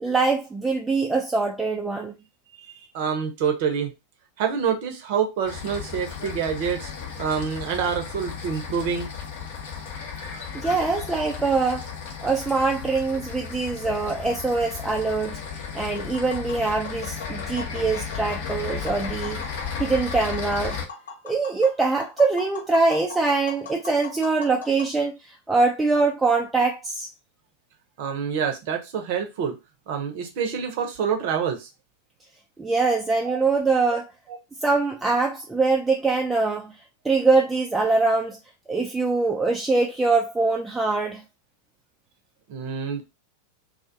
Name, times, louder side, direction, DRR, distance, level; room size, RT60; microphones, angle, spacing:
voice 1, 0.0-2.1 10.5-11.9 12.2-15.4 15.7-19.4 19.8-20.8 21.2-27.1 32.6-34.1 34.6-36.7 37.0-38.4 38.7-41.2, right 3 dB, 10° right, 0.3 m, -23 dB
voice 2, 2.6-3.9 4.4-6.9 7.2-9.1 28.0-29.5 29.9-31.7 33.2-33.4 33.9-34.0 34.3-34.4 42.5-43.0, right 7 dB, 50° right, 0.6 m, -27 dB
sound 1, 5.4-20.8, left 6 dB, 55° left, 0.6 m, -34 dB
Tap, 15.7-24.9, left 5 dB, 70° left, 1.0 m, -41 dB
2.4 x 2.2 x 2.5 m
figure-of-eight pair, 90°, 0 cm